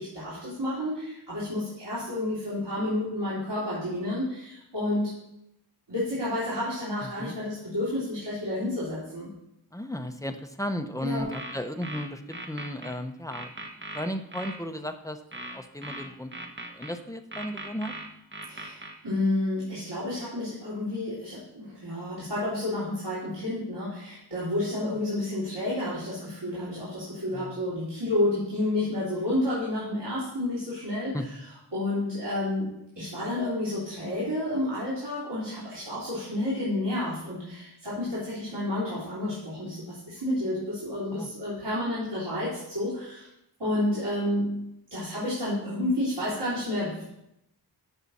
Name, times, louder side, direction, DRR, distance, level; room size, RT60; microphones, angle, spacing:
voice 1, 0.0-5.1 5.9-9.3 11.0-11.3 18.5-31.2 31.7-32.7 33.0-43.3 43.6-44.5 44.9-47.1, left 1 dB, 85° right, -10 dB, 3.1 m, -30 dB
voice 2, 9.7-13.5 13.9-16.3 16.7-17.9 24.8-25.0 27.3-27.6 31.1-31.3 41.1-41.3, left 1 dB, 10° left, 7 dB, 0.9 m, -35 dB
sound 1, 11.2-12.9 13.3-14.6 15.3-16.9 17.3-18.9, right 1 dB, 25° right, 1.4 m, -39 dB
13.5 x 5.7 x 4.2 m, 0.82 s
wide cardioid pair, 50°, 41 cm